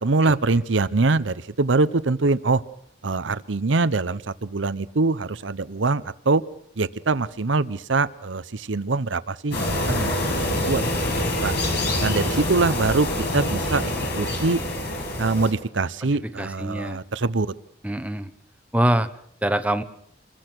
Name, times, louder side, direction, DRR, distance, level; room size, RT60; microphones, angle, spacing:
voice 1, 0.0-2.6 3.0-6.4 6.8-10.8 11.4-11.5 12.0-13.1 13.3-14.6 15.2-17.5, right 3 dB, 85° right, 15 dB, 0.8 m, -23 dB
sound 1, 9.5-15.5, left 1 dB, 65° left, 7.0 m, -25 dB
voice 2, 16.4-17.0 17.8-18.3 18.7-19.1 19.4-19.8, right 1 dB, 10° right, 9 dB, 1.0 m, -24 dB
26.5 x 21.0 x 6.2 m, 0.68 s
head